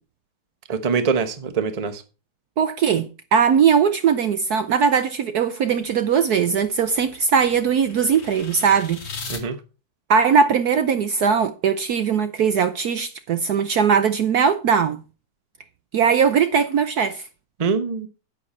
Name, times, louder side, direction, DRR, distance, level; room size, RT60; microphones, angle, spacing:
voice 1, 0.7-2.0 9.3-9.6 17.6-18.1, right 5 dB, 25° right, 0.8 m, -23 dB
voice 2, 2.6-9.0 10.1-15.0 15.9-17.3, right 6 dB, 65° right, 1.1 m, -20 dB
sound 1, 5.8-9.4, left 4 dB, 50° left, 2.4 m, -39 dB
10.0 x 9.1 x 4.3 m
omnidirectional pair, 2.1 m